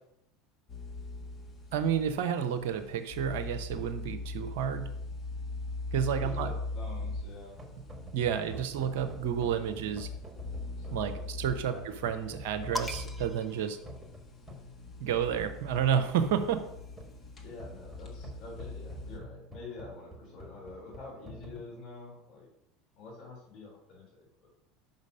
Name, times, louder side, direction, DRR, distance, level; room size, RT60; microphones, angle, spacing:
sound 1, 0.7-19.2, left 3 dB, 35° left, 1.5 m, -41 dB
voice 1, 1.7-4.9 5.9-6.5 8.1-10.1 10.9-11.7 12.0-13.8 15.0-16.6, right 8 dB, 65° right, 9 dB, 0.7 m, -30 dB
voice 2, 6.2-7.6 10.8-11.3 11.7-11.8 17.4-22.5 23.0-24.5, left 3 dB, 50° left, -4 dB, 3.1 m, -47 dB
sound 2, 7.5-21.6, equal, 10° right, 1.6 m, -48 dB
sound 3, 12.7-14.5 15.7-17.3, left 1 dB, 5° left, 0.6 m, -43 dB
5.6 x 5.3 x 5.3 m, 0.79 s
hypercardioid pair, 75°, 0 cm